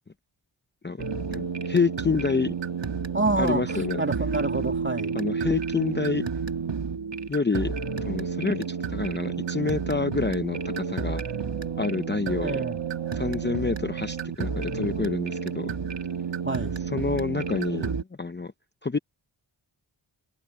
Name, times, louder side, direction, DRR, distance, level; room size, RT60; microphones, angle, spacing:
sound 1, 1.0-18.0, right 6 dB, 60° right, 1.8 m, -31 dB
voice 1, 1.3-2.5 3.4-4.0 5.1-6.3 7.3-7.7 8.0-11.2 11.8-12.6 13.1-15.7 16.8-18.5 18.8-19.0, left 4 dB, 20° left, 0.7 m, -28 dB
voice 2, 3.1-5.2 12.4-12.8 16.4-16.8, right 2 dB, 25° right, 2.5 m, -28 dB
wide cardioid pair, 65°, 48 cm